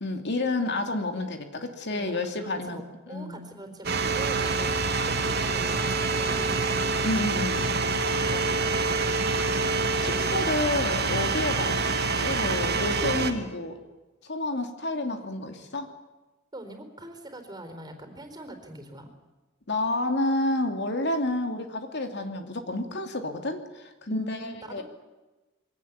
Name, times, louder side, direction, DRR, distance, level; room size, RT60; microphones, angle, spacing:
voice 1, 0.0-2.8 3.1-3.5 7.0-7.8 8.3-8.6 10.0-13.8 14.2-15.9 19.7-24.8, left 2 dB, 60° left, 6 dB, 2.7 m, -30 dB
voice 2, 2.4-6.6 16.5-19.1 24.1-24.8, right 1 dB, 20° right, 7 dB, 4.2 m, -42 dB
sound 1, 3.8-13.3, right 4 dB, 55° right, 2.5 m, -26 dB
23.5 x 18.0 x 9.6 m, 1.1 s
head